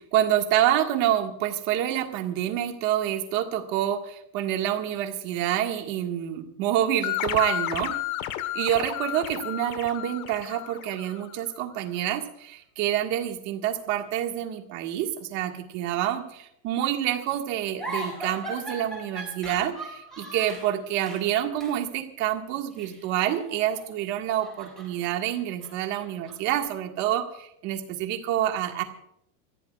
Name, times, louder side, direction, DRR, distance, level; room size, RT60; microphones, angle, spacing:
voice 1, 0.1-4.0 4.3-7.9 8.6-12.2 12.8-16.2 16.6-19.7 20.2-27.2 27.6-28.8, right 11 dB, 35° right, 4 dB, 1.7 m, -27 dB
sound 1, 7.0-11.4, left 13 dB, 60° left, 1.4 m, -32 dB
sound 2, 17.8-20.7 21.1-21.3 21.6-21.8 22.7-23.9 24.2-26.6, right 2 dB, ahead, 6.1 m, -39 dB
28.5 x 15.0 x 2.4 m, 0.75 s
supercardioid pair, 170°, 48 cm